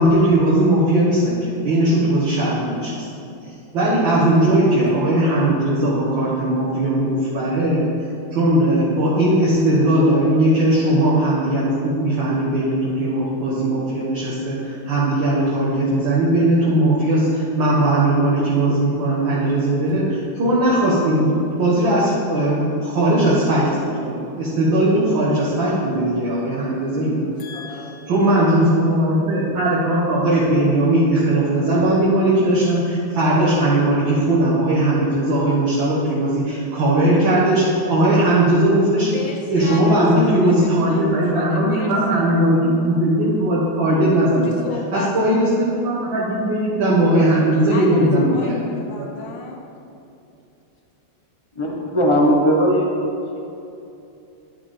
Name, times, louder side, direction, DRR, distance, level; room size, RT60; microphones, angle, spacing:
voice 1, 0.0-3.1 3.7-7.8 8.3-21.3 21.6-27.2 28.1-39.1 39.5-44.6 44.9-48.6 49.0-49.1, right 1 dB, 70° right, -8 dB, 2.2 m, -18 dB
voice 2, 27.1-28.1 39.1-42.2 44.2-45.1 47.7-49.6, left 3 dB, 70° left, 1 dB, 1.8 m, -35 dB
voice 3, 51.5-53.1 53.3-53.4, equal, 20° left, -2 dB, 0.9 m, -18 dB
11.0 x 5.9 x 5.1 m, 2.7 s
omnidirectional pair, 2.2 m